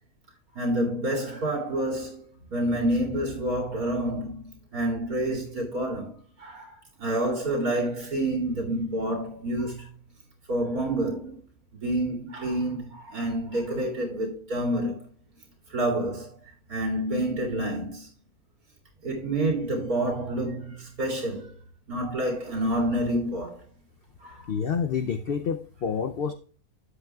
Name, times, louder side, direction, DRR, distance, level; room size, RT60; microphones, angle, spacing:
voice 1, 0.5-2.3 2.5-6.7 7.0-9.9 10.5-11.4 11.8-15.1 15.7-16.3 16.7-18.1 19.0-21.5 21.9-23.6 24.2-24.5, right 1 dB, 65° right, 3.1 m, -28 dB
voice 2, 24.5-26.3, left 6 dB, 80° left, 0.5 m, -28 dB
12.5 x 8.2 x 2.3 m
omnidirectional pair, 1.7 m